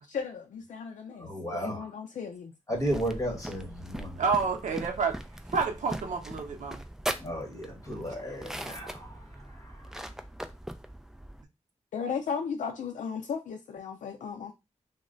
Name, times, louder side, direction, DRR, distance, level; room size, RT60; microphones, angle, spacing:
voice 1, 0.1-2.5 11.9-14.5, left 6 dB, 90° left, 0.4 m, -35 dB
voice 2, 1.2-1.9 2.7-4.2 7.2-9.8, equal, 25° left, 1.4 m, -34 dB
sound 1, 2.7-11.4, right 1 dB, 5° right, 0.3 m, -40 dB
voice 3, 4.2-5.2 5.5-6.9, right 5 dB, 85° right, 0.6 m, -29 dB
3.0 x 2.1 x 3.7 m
wide cardioid pair, 105°, 13 cm